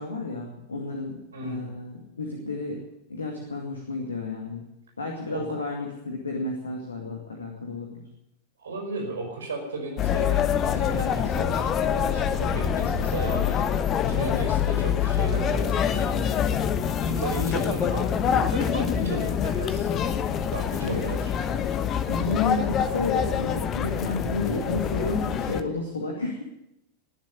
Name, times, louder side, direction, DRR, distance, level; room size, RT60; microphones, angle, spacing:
voice 1, 0.0-2.8 3.1-4.7 5.0-8.0 12.4-12.7 19.0-19.3 20.8-21.1 22.1-26.4, left 3 dB, 75° left, 2 dB, 2.3 m, -31 dB
voice 2, 1.3-1.7 5.3-5.4 8.6-13.8 14.1-16.3 17.1-19.9 20.5-21.3, right 2 dB, 70° right, 1 dB, 4.8 m, -35 dB
sound 1, 10.0-25.6, left 8 dB, 30° left, 1.0 m, -25 dB
21.0 x 7.4 x 9.3 m, 0.87 s
figure-of-eight pair, 90°, 0 cm